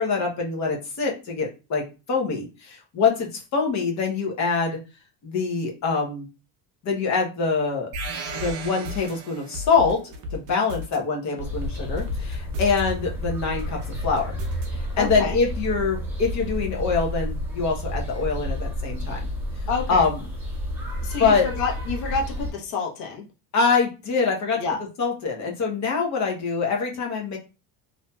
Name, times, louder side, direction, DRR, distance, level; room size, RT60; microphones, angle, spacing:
voice 1, 0.0-4.8 5.2-6.3 6.8-7.9 8.3-14.4 14.8-19.3 19.9-20.2 21.2-21.4 23.5-24.6 25.0-27.4, left 5 dB, 40° left, 1 dB, 0.8 m, -24 dB
sound 1, 7.9-9.1 9.5-11.0 11.4-12.8 13.2-14.7 15.1-15.2, left 3 dB, 45° right, 0.7 m, -34 dB
sound 2, 7.9-9.8, right 6 dB, 80° right, 0.8 m, -36 dB
sound 3, 11.4-22.5, equal, 5° right, 0.8 m, -31 dB
voice 2, 15.0-15.4 19.7-20.0 21.0-23.2 24.6-24.8, left 4 dB, 75° left, -2 dB, 1.1 m, -28 dB
2.7 x 2.6 x 2.2 m, 0.30 s
cardioid pair, 145°, 42 cm